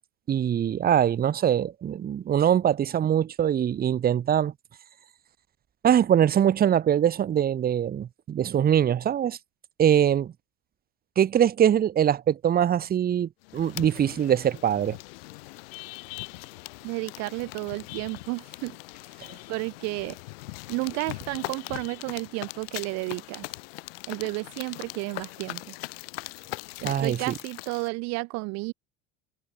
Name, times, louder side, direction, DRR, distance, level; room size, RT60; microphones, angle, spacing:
voice 1, 0.3-4.5 5.8-9.4 9.8-10.3 11.2-15.0 26.8-27.3, right 9 dB, 30° right, 0.9 m, -23 dB
sound 1, 13.4-27.9, left 23 dB, 85° left, 1.5 m, -41 dB
voice 2, 16.8-18.8 19.5-20.2 20.7-23.5 24.1-25.7 26.8-28.7, right 27 dB, 65° right, 0.6 m, -32 dB
supercardioid pair, 95°, 29 cm